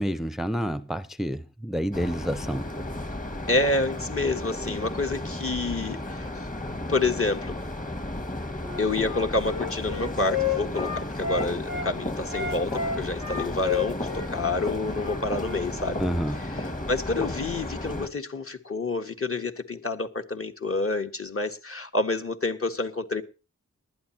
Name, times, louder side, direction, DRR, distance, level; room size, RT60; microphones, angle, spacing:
voice 1, 0.0-2.7 16.0-16.5, equal, ahead, 0.7 m, -29 dB
sound 1, 1.9-18.1, left 1 dB, 25° left, 1.8 m, -34 dB
voice 2, 3.5-6.3 6.9-7.6 8.8-16.0 16.9-23.2, left 2 dB, 45° left, 1.7 m, -28 dB
Wind instrument woodwind instrument, 8.6-11.9 12.3-15.7, left 6 dB, 75° left, 4.0 m, -31 dB
19.5 x 12.0 x 2.9 m
cardioid pair, 55°, 31 cm